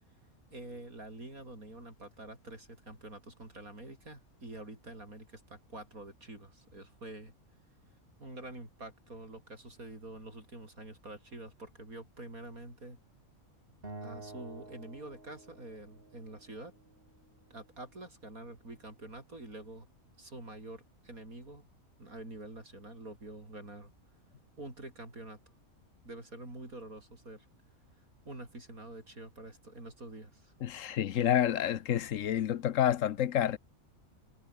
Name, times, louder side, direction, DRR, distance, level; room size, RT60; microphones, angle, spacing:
voice 1, 0.5-7.3 8.2-13.0 14.0-16.7 17.5-19.9 20.2-21.7 22.0-23.9 24.6-25.4 26.0-27.5 28.2-30.5, right 2 dB, 75° right, 7.7 m, -47 dB
Acoustic guitar, 13.8-17.1, right 2 dB, 40° right, 3.9 m, -49 dB
voice 2, 30.6-33.6, left 10 dB, 65° left, 1.2 m, -29 dB
omnidirectional pair, 1.5 m